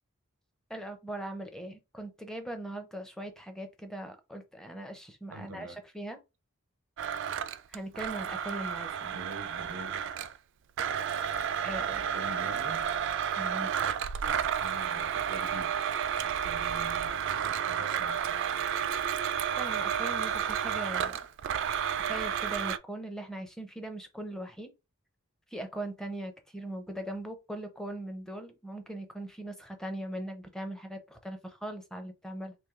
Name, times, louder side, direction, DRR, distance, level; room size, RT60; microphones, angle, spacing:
voice 1, 0.7-6.2 7.7-9.1 11.6-12.0 13.4-13.7 19.5-21.2 22.0-24.7 25.5-32.6, right 1 dB, 5° left, 0.5 m, -40 dB
voice 2, 5.3-5.8 9.1-10.0 12.0-12.9 14.6-15.8 16.2-18.6, right 1 dB, 90° right, 0.7 m, -45 dB
Domestic sounds home sounds, 7.0-10.4 10.8-22.8, right 8 dB, 55° right, 0.3 m, -31 dB
3.2 x 2.6 x 3.6 m
head